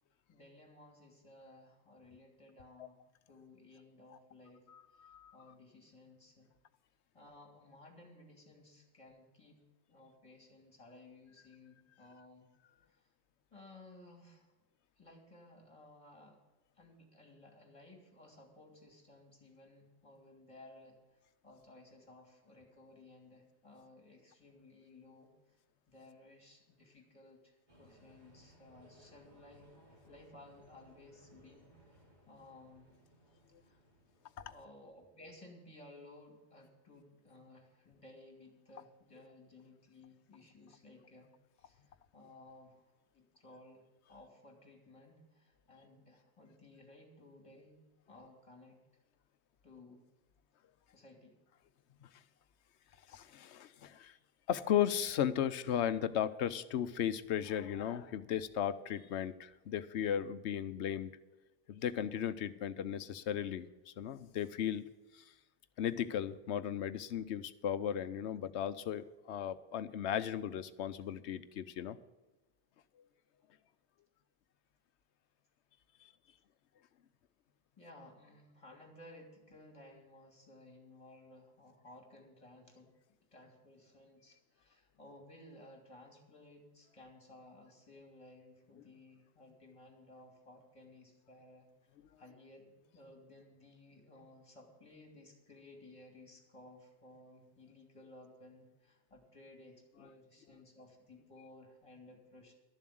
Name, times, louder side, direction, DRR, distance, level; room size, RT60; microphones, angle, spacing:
voice 1, 0.3-3.0 3.3-4.7 4.9-6.5 7.1-12.5 12.8-13.1 13.5-14.5 15.0-16.4 16.7-25.6 25.9-32.9 33.6-33.8 34.5-47.8 48.1-48.8 49.6-50.0 50.9-51.4 77.8-82.9 83.3-91.7 92.2-102.5, left 2 dB, 25° left, 2 dB, 2.6 m, -58 dB
voice 2, 4.7-5.3 34.4-34.5 53.1-54.2 54.5-61.1 61.7-64.8 65.1-65.2 65.8-72.0, left 9 dB, 70° left, 14 dB, 1.0 m, -36 dB
sound 1, 27.7-34.8, equal, 40° right, 3.5 m, -64 dB
12.0 x 7.3 x 7.8 m, 1.1 s
omnidirectional pair, 1.2 m